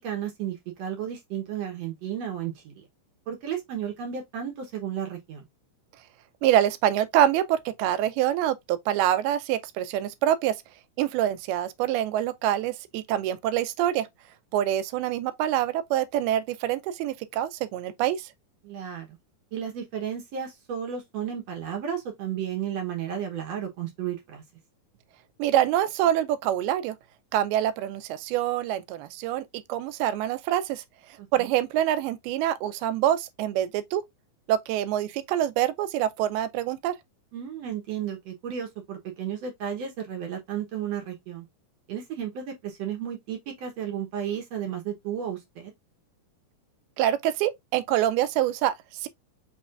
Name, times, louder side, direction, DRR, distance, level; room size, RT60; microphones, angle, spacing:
voice 1, 0.0-2.7 3.3-5.4 18.6-19.1 19.5-24.4 31.2-31.5 37.3-41.4 41.9-45.7, right 9 dB, 70° right, 1.6 m, -33 dB
voice 2, 6.4-10.6 11.0-14.1 14.5-18.3 25.4-27.0 27.3-30.8 31.3-34.0 34.5-36.9 47.0-49.1, right 11 dB, 85° right, 2.6 m, -25 dB
6.2 x 3.2 x 2.4 m
omnidirectional pair, 4.4 m